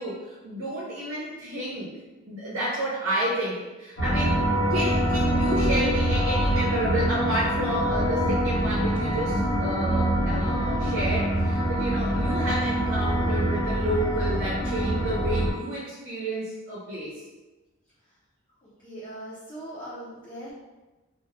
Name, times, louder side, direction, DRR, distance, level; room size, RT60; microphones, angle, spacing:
voice 1, 0.0-1.9 2.3-4.4 4.7-17.2 19.8-19.9, right 1 dB, 75° right, -6 dB, 0.7 m, -30 dB
sound 1, 4.0-15.5, right 1 dB, 65° left, 1.0 m, -25 dB
voice 2, 18.6-20.5, right 1 dB, 25° left, -11 dB, 0.6 m, -40 dB
2.5 x 2.2 x 3.5 m, 1.2 s
head